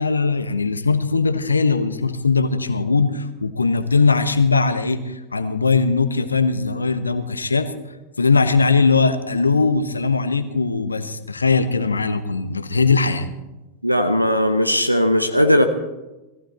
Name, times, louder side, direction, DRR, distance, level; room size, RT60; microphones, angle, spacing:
voice 1, 0.0-7.7 8.2-13.3, left 4 dB, 80° left, 11 dB, 1.0 m, -20 dB
voice 2, 13.8-15.7, equal, 90° right, 8 dB, 0.9 m, -17 dB
18.5 x 15.0 x 4.3 m, 1.1 s
figure-of-eight pair, 90°, 0 cm